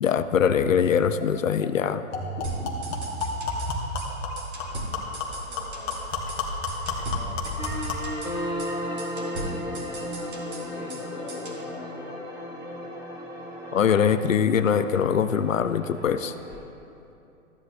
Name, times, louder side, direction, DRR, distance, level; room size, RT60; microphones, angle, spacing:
voice 1, 0.0-2.0 13.7-16.3, left 7 dB, 70° left, 11 dB, 0.6 m, -22 dB
Glug Glug, 1.2-1.3 1.6-1.7 2.1-8.1, left 2 dB, 25° left, 1.3 m, -31 dB
sound 1, 2.4-3.7 4.0-4.1 4.4-6.0 6.3-6.4 6.7-8.3 8.6-8.7 9.0-11.0 11.3-11.6, right 2 dB, 55° right, 2.2 m, -38 dB
voice 2, 5.0-6.0 6.9-7.9 9.1-10.4 10.7-12.2, left 2 dB, 10° left, -3 dB, 0.4 m, -45 dB
sound 2, 7.6-16.6, equal, 10° right, 1.7 m, -35 dB
15.0 x 10.0 x 2.3 m, 2.8 s
figure-of-eight pair, 120°, 41 cm